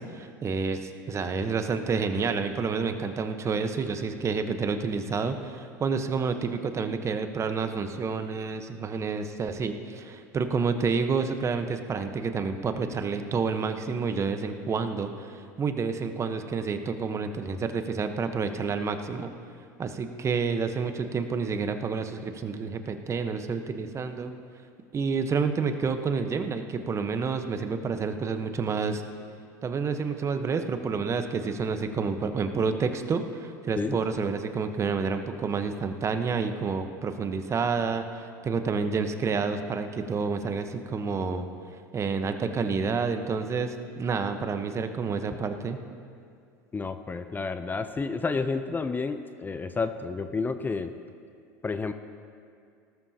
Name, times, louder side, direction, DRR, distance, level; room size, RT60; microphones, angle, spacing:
voice 1, 0.0-19.3 19.8-24.3 24.9-29.0 29.6-41.4 41.9-45.8, right 5 dB, 30° right, 8 dB, 1.0 m, -29 dB
voice 2, 46.7-50.9 51.6-51.9, left 4 dB, 20° left, 10 dB, 0.6 m, -30 dB
18.5 x 12.5 x 2.8 m, 2.3 s
hypercardioid pair, 85°, 10 cm